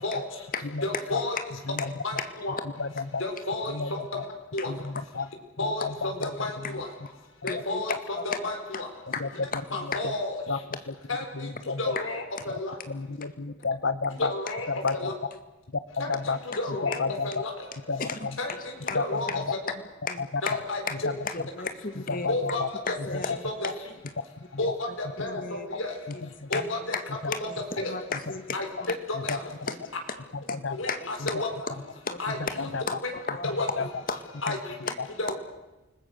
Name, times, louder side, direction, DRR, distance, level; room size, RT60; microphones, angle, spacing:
voice 1, 0.0-0.5 0.8-1.4 2.0-2.6 3.2-4.3 4.5-4.7 5.6-8.9 9.7-10.6 11.1-12.8 14.2-15.1 16.0-17.7 18.4-19.6 20.4-21.1 22.3-23.7 24.6-26.8 27.4-27.5 27.8-28.0 28.5-29.5 30.7-31.7 32.2-32.7 33.0-33.1 33.4-33.9 34.4-34.9 35.2-35.3, left 2 dB, 90° left, 3 dB, 4.5 m, -33 dB
voice 2, 0.5-1.0 2.2-2.3 6.1-6.3 7.5-7.8 8.1-8.8 9.1-10.0 12.0-12.1 16.7-17.2 18.0-18.2 18.9-19.0 19.3-19.4 20.1-20.5 20.9-21.0 21.3-22.6 22.9-23.7 25.2-25.7 26.5-27.0 27.3-27.5 27.8-28.6 29.3-29.4 29.7-29.8 30.5-30.6 30.9-31.1 32.0-32.5 32.9-33.0 33.3-33.5 33.8-34.2 34.8-34.9, left 4 dB, 45° left, 8 dB, 2.1 m, -34 dB
voice 3, 2.8-3.2 3.7-4.0 4.7-5.3 5.6-6.3 6.6-6.8 7.9-8.0 9.2-9.3 9.8-10.1 10.5-10.6 10.9-11.0 11.3-11.9 12.9-14.3 14.7-14.9 16.0-16.4 16.7-17.3 17.9-18.4 18.9-19.4 20.2-20.3 21.0-21.2 22.1-22.7 23.3-23.4 23.6-23.7 24.7-24.8 26.2-26.5 29.1-29.4 30.3-30.8 31.3-31.4 32.3-32.8 33.8-33.9 35.0-35.1, left 4 dB, 70° left, 13 dB, 0.9 m, -31 dB
29.0 x 20.5 x 6.7 m, 1.1 s
head